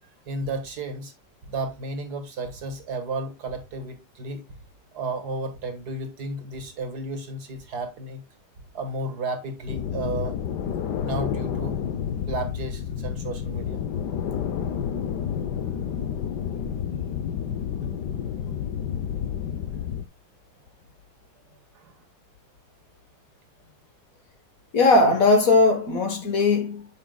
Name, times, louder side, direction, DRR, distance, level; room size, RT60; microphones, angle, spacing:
voice 1, 0.3-1.1 1.4-4.6 4.9-8.2 8.7-10.4 11.0-11.8 12.1-13.8 16.7-16.8 21.7-21.9, right 2 dB, 60° right, 2.1 m, -33 dB
sound 1, 9.7-20.0, left 8 dB, 70° left, 1.3 m, -30 dB
voice 2, 24.7-26.9, left 3 dB, 50° left, 1.6 m, -19 dB
9.2 x 7.3 x 2.3 m
omnidirectional pair, 1.9 m